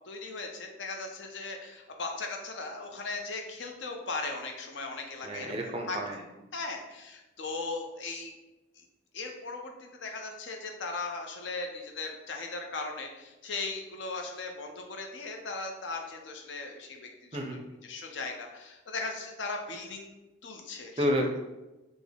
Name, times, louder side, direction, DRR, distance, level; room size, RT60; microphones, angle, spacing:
voice 1, 0.1-6.0 6.5-8.3 8.8-8.9 9.1-20.1 20.4-21.1, left 3 dB, 70° left, 3 dB, 0.5 m, -38 dB
voice 2, 5.2-6.2 17.3-17.6 21.0-21.4, equal, 30° right, 1 dB, 0.4 m, -30 dB
3.4 x 2.0 x 3.5 m, 1.0 s
head